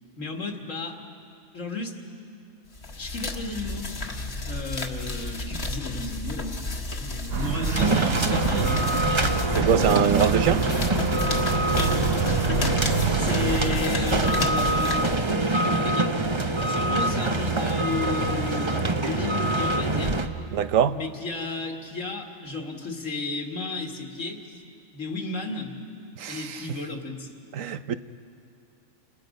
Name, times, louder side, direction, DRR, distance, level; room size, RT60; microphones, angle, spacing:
voice 1, 0.2-1.0 1.5-2.0 3.0-3.9 4.5-6.7 7.0-9.2 9.6-10.3 11.4-16.2 16.7-20.2 20.9-24.6 24.9-25.7 26.3-27.3, left 3 dB, 70° left, 2 dB, 2.4 m, -34 dB
sound 1, 2.7-15.6, left 2 dB, 55° left, 1.7 m, -32 dB
sound 2, 7.3-13.8, right 7 dB, 55° right, 0.9 m, -28 dB
sound 3, 7.8-20.3, right 2 dB, 25° right, 0.8 m, -25 dB
voice 2, 9.5-10.6 13.0-13.1 20.5-21.0 26.2-26.6 27.5-28.0, right 8 dB, 80° right, 11 dB, 1.1 m, -23 dB
30.0 x 27.0 x 5.3 m, 2.5 s
omnidirectional pair, 1.4 m